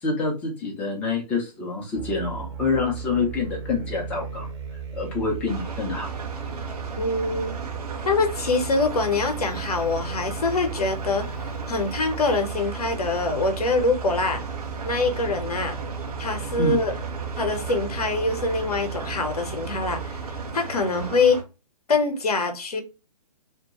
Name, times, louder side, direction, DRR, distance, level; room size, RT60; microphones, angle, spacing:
voice 1, 0.0-4.5 4.9-6.1 16.6-16.8, left 4 dB, 5° left, 0.4 m, -26 dB
sound 1, 1.9-20.5, right 7 dB, 40° right, 0.7 m, -36 dB
sound 2, 5.5-21.4, right 3 dB, 65° right, 0.8 m, -36 dB
voice 2, 7.0-7.5 8.1-14.4 14.8-15.8 16.2-16.9 17.4-20.2 20.5-21.4 21.9-22.8, left 3 dB, 65° left, 0.7 m, -24 dB
2.3 x 2.1 x 2.8 m
figure-of-eight pair, 130°, 21 cm